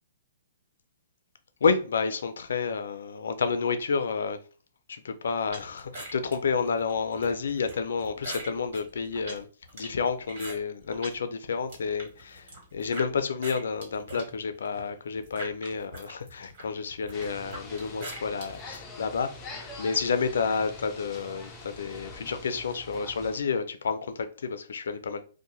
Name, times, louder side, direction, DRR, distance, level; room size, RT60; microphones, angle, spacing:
voice 1, 1.6-4.4 4.9-9.5 9.7-19.3 19.8-25.2, left 5 dB, 80° left, 0.4 m, -30 dB
sound 1, 5.5-11.2 11.5-13.1 13.4-18.8, right 1 dB, 55° right, 1.5 m, -43 dB
sound 2, 17.1-23.4, left 3 dB, 15° left, 0.5 m, -44 dB
2.6 x 2.1 x 3.0 m
hypercardioid pair, 150°, 0 cm